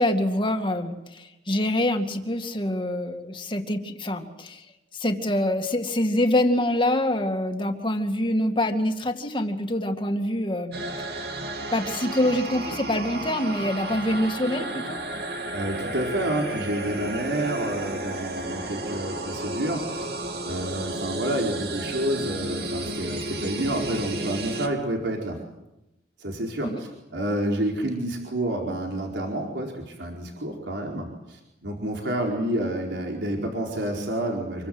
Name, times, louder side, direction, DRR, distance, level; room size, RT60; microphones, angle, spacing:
voice 1, 0.0-4.7 4.9-11.1 11.7-15.0 26.6-26.8, left 1 dB, 25° left, 5 dB, 2.3 m, -25 dB
sound 1, 10.7-24.7, right 1 dB, 60° right, 3.1 m, -32 dB
voice 2, 15.5-20.1 20.4-25.4 26.2-34.7, right 1 dB, 75° right, 0 dB, 4.5 m, -29 dB
27.5 x 23.0 x 8.0 m, 0.91 s
head